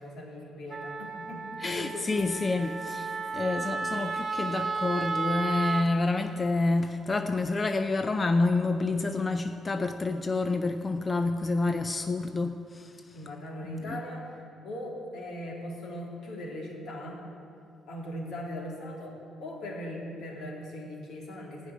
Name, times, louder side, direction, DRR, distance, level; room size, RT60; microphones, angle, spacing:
voice 1, 0.0-2.6 3.1-3.4 13.1-17.2 17.9-21.7, left 1 dB, 75° left, -2 dB, 2.9 m, -39 dB
Wind instrument woodwind instrument, 0.7-5.9, right 4 dB, 35° right, 0.8 m, -33 dB
voice 2, 1.6-13.2 13.6-14.0, left 3 dB, 25° left, 7 dB, 0.5 m, -28 dB
14.5 x 6.1 x 9.4 m, 2.7 s
cardioid pair, 135°, 0 cm